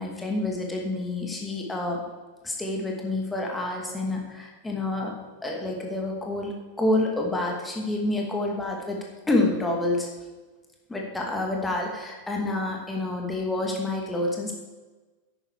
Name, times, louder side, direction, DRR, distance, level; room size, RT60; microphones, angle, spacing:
voice 1, 0.0-2.0 2.4-5.1 5.4-9.0 9.3-10.1 10.9-14.5, left 2 dB, 10° left, 0 dB, 2.4 m, -28 dB
10.0 x 9.3 x 4.9 m, 1.2 s
figure-of-eight pair, 90°, 0 cm